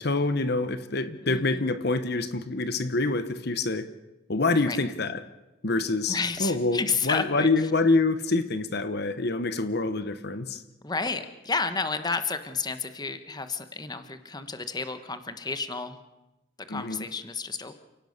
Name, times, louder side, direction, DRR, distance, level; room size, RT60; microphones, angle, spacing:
voice 1, 0.0-3.9 4.3-5.2 5.6-10.6 16.7-17.0, left 3 dB, 55° left, 11 dB, 1.1 m, -26 dB
voice 2, 1.3-1.6 4.7-4.8 6.1-7.7 10.8-16.0 16.6-17.7, left 4 dB, 20° left, 10 dB, 1.3 m, -31 dB
29.0 x 17.5 x 6.7 m, 1.0 s
head